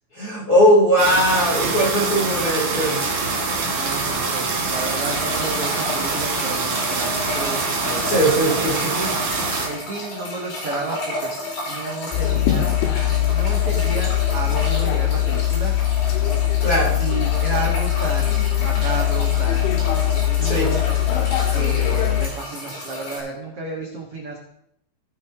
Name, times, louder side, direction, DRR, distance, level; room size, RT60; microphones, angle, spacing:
voice 1, 0.1-3.0 8.1-8.9 16.6-17.0 20.4-20.7, equal, 25° left, -5 dB, 2.2 m, -19 dB
sound 1, 1.0-9.7, right 3 dB, 45° right, 2.9 m, -24 dB
voice 2, 3.7-9.1 9.6-15.7 17.0-20.8 21.5-24.4, right 3 dB, 75° right, -1 dB, 1.3 m, -32 dB
sound 2, 4.7-23.2, left 1 dB, 50° left, 6.1 m, -32 dB
sound 3, 12.1-22.3, left 12 dB, 85° left, 3.7 m, -21 dB
17.5 x 6.5 x 3.7 m, 0.73 s
omnidirectional pair, 5.2 m